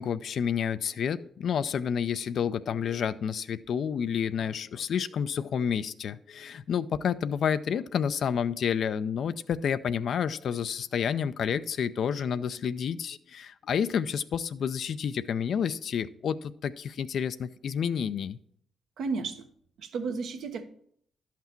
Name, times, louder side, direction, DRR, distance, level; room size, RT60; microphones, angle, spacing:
voice 1, 0.0-18.4, left 7 dB, 65° left, 14 dB, 0.4 m, -30 dB
voice 2, 19.0-19.5 19.8-20.6, right 4 dB, 75° right, 6 dB, 1.0 m, -33 dB
11.0 x 5.9 x 4.4 m, 0.65 s
cardioid pair, 75°, 0 cm